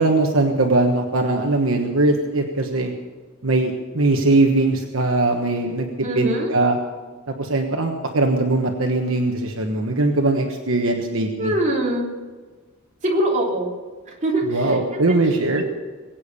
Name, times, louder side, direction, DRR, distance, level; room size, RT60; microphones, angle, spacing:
voice 1, 0.0-2.9 3.4-6.8 7.3-11.5 14.5-15.6, right 2 dB, 70° right, 3 dB, 1.3 m, -20 dB
voice 2, 6.0-6.5 11.4-12.1 13.0-13.7 14.1-15.2 15.5-15.7, right 1 dB, 35° right, -3 dB, 3.3 m, -23 dB
22.0 x 8.8 x 6.8 m, 1.4 s
head